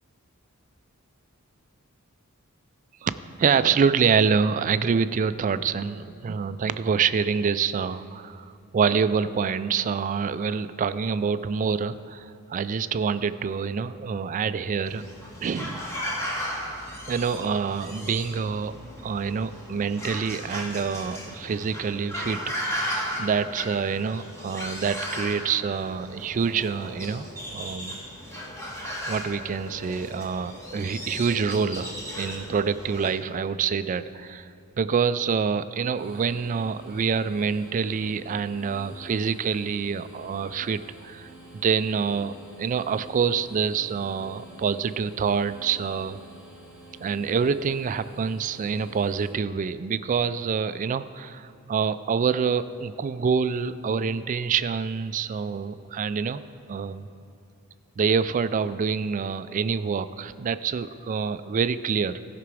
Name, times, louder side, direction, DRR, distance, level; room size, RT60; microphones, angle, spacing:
voice 1, 3.4-8.5 8.7-15.0 15.4-15.8 17.1-18.8 19.0-22.9 23.2-28.0 29.1-34.5 34.8-41.3 41.6-46.2 47.0-56.4 56.7-57.1 58.0-62.2, right 6 dB, 35° right, 13 dB, 0.3 m, -26 dB
sound 1, 14.9-33.1, equal, 15° left, 1.4 m, -36 dB
sound 2, 35.9-49.3, right 1 dB, 5° right, 2.8 m, -48 dB
15.5 x 5.9 x 4.8 m, 2.8 s
head